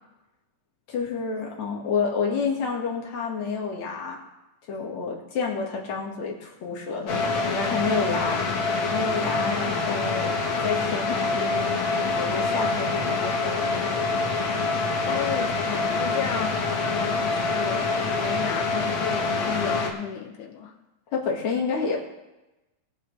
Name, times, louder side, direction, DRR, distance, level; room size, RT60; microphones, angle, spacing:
voice 1, 0.9-4.2 4.7-10.3 10.6-14.0 16.1-16.4 21.1-22.0, left 5 dB, 65° left, -2 dB, 3.1 m, -29 dB
sound 1, 7.1-19.9, left 3 dB, 50° left, 1.8 m, -26 dB
voice 2, 15.1-20.7, left 7 dB, 80° left, 1 dB, 2.7 m, -33 dB
21.5 x 7.7 x 3.4 m, 1.0 s
omnidirectional pair, 3.6 m